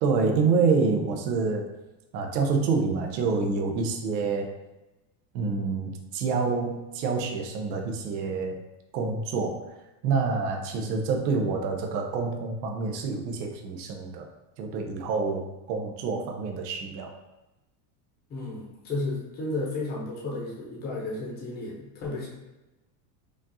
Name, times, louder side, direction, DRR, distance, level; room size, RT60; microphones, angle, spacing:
voice 1, 0.0-1.7 2.1-4.5 5.3-8.6 8.9-9.6 10.0-14.3 14.6-17.1, right 4 dB, 90° right, 3 dB, 0.7 m, -27 dB
voice 2, 18.3-22.3, left 2 dB, 20° left, -4 dB, 0.7 m, -33 dB
5.0 x 2.4 x 2.7 m, 1.0 s
supercardioid pair, 160°, 49 cm